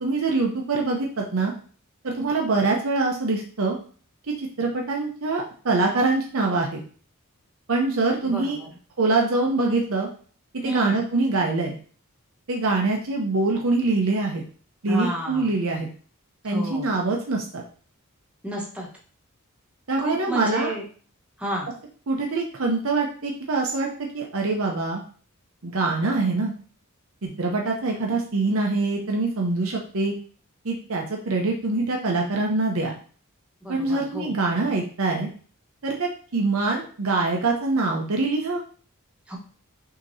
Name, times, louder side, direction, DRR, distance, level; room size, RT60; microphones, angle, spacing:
voice 1, 0.0-1.5 2.0-3.8 4.4-6.8 7.7-8.6 9.0-10.1 10.6-11.8 12.5-14.4 14.8-15.9 16.4-17.6 19.9-20.7 22.1-23.9 24.1-25.0 25.6-26.5 27.2-30.1 30.6-33.0 33.7-35.3 35.8-38.6, right 3 dB, 70° right, 0 dB, 0.7 m, -24 dB
voice 2, 8.2-8.7 10.6-11.0 14.9-15.5 16.4-16.9 18.4-18.9 20.0-20.8 21.4-21.7 33.6-34.3 39.3-39.4, right 1 dB, 5° right, -3 dB, 1.1 m, -31 dB
6.3 x 2.9 x 2.7 m, 0.42 s
head